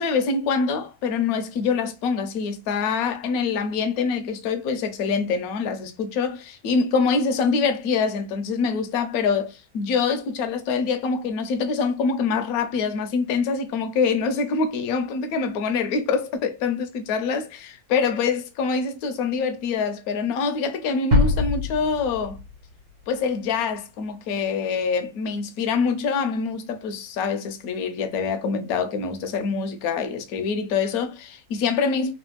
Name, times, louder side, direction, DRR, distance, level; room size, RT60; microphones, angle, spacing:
voice 1, 0.0-22.4 23.1-32.1, left 5 dB, 75° left, 1.0 m, -25 dB
sound 1, 21.1-23.2, left 3 dB, 65° right, 1.2 m, -23 dB
3.2 x 2.3 x 3.0 m
omnidirectional pair, 1.6 m